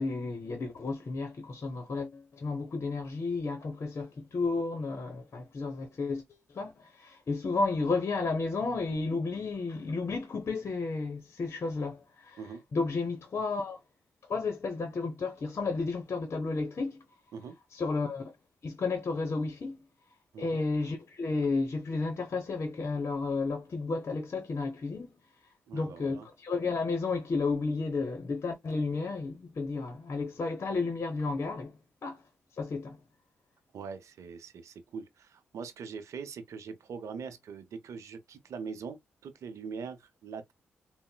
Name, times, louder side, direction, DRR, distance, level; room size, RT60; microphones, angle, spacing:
voice 1, 0.0-6.2 6.5-12.4 12.7-13.8 14.3-17.0 17.7-18.2 18.6-19.8 20.4-25.1 25.7-31.7 32.0-32.2 32.6-33.0, left 3 dB, 55° left, 0.8 m, -32 dB
voice 2, 25.7-26.3 33.7-40.5, right 5 dB, 75° right, 0.6 m, -42 dB
3.9 x 2.1 x 2.2 m
supercardioid pair, 50°, 5 cm